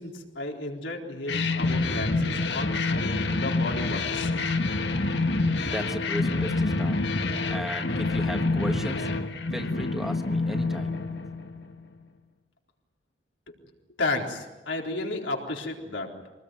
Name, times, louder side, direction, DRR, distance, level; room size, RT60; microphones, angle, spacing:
voice 1, 0.0-4.4 14.0-16.1, left 2 dB, 85° left, 0 dB, 4.1 m, -33 dB
sound 1, 1.3-11.8, left 3 dB, 70° left, 1.8 m, -27 dB
voice 2, 5.6-7.0 7.5-9.1 9.5-10.9, equal, ahead, 5 dB, 1.4 m, -35 dB
24.5 x 20.0 x 9.4 m, 1.2 s
head